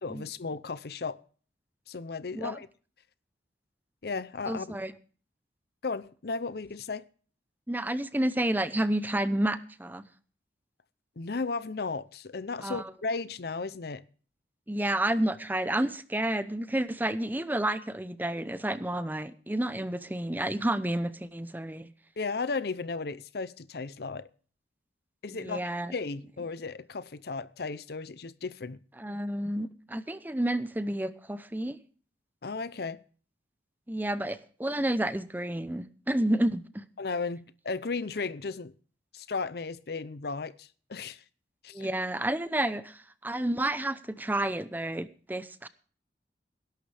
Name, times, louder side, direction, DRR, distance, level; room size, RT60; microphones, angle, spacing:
voice 1, 0.0-1.2 1.9-2.7 4.0-4.8 5.8-7.1 11.2-14.0 22.2-24.3 25.2-28.8 32.4-33.0 37.0-38.7 39.1-41.2 41.6-41.9, left 4 dB, 60° left, 0.7 m, -35 dB
voice 2, 4.5-4.9 7.7-10.0 12.6-12.9 14.7-21.9 25.3-25.9 29.0-31.8 33.9-36.8 41.7-45.7, right 1 dB, 10° right, 0.7 m, -30 dB
19.0 x 11.5 x 3.4 m
head